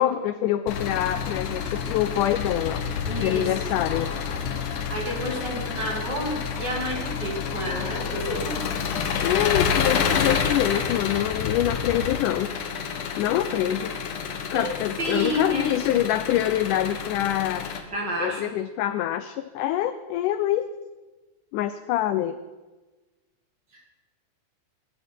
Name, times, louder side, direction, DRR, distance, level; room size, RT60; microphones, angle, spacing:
voice 1, 0.0-2.8 3.2-4.1 9.2-12.5 13.2-14.0 14.5-17.7 18.2-20.7 21.5-22.4, left 12 dB, 85° left, 11 dB, 1.8 m, -25 dB
Engine, 0.7-17.8, left 6 dB, 65° left, 2.4 m, -29 dB
voice 2, 3.1-3.7 4.9-8.6 14.5-16.1 17.9-18.5, equal, 35° right, 0 dB, 2.3 m, -31 dB
21.0 x 12.0 x 4.5 m, 1.2 s
omnidirectional pair, 4.2 m